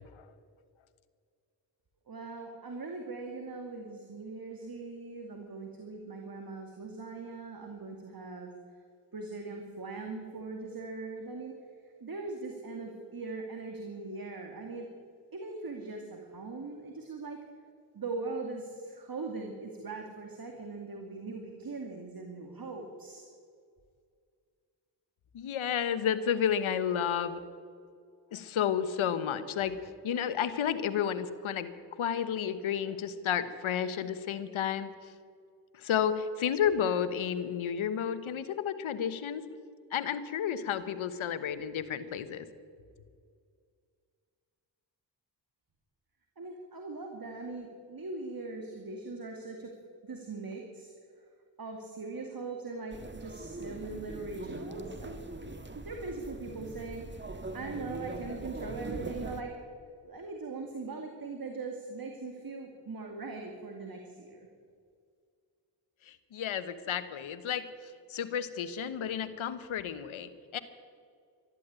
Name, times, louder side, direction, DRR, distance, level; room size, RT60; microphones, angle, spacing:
voice 1, 2.1-8.5 9.1-11.6 12.0-14.9 15.3-17.4 17.9-23.3 46.4-49.7 50.0-50.9 51.6-55.2 55.7-59.5 60.0-64.5, right 3 dB, 45° right, 3 dB, 2.3 m, -40 dB
voice 2, 25.3-27.4 28.3-29.8 30.0-35.1 35.7-39.4 39.9-42.5 66.0-70.6, left 8 dB, 75° left, 12 dB, 1.2 m, -32 dB
sound 1, 52.9-59.4, right 2 dB, 25° right, 1.7 m, -42 dB
13.5 x 11.5 x 8.9 m, 2.1 s
supercardioid pair, 45°, 48 cm